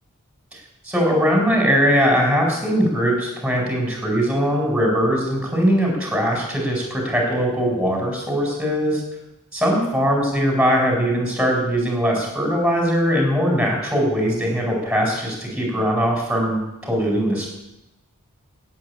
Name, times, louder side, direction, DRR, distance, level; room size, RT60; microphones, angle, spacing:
voice 1, 0.8-9.0 9.5-17.5, equal, 5° right, -1 dB, 4.7 m, -20 dB
12.0 x 8.7 x 9.5 m, 0.96 s
head